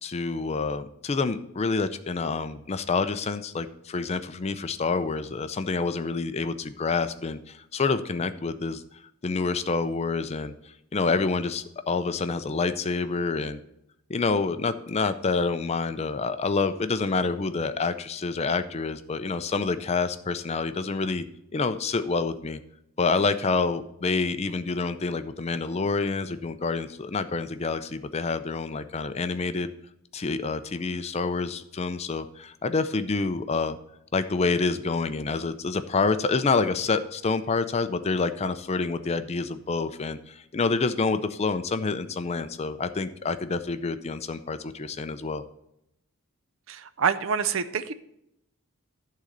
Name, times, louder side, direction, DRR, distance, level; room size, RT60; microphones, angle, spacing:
voice 1, 0.0-8.8 9.2-13.6 14.1-21.2 21.5-22.6 23.0-29.7 30.1-33.8 34.1-45.4, left 4 dB, 30° left, 10 dB, 0.4 m, -27 dB
voice 2, 46.7-47.9, right 6 dB, 60° right, 13 dB, 0.5 m, -26 dB
11.5 x 3.8 x 6.6 m, 0.81 s
head